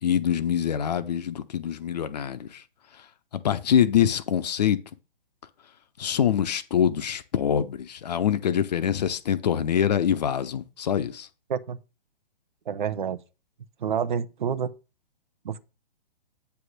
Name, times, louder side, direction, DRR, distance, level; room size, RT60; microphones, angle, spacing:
voice 1, 0.0-2.6 3.4-4.8 6.0-11.3, left 9 dB, 45° left, 0.7 m, -24 dB
voice 2, 12.7-13.2 13.8-14.7 15.4-15.6, right 7 dB, 55° right, 0.8 m, -28 dB
8.4 x 3.5 x 6.4 m
figure-of-eight pair, 125°, 29 cm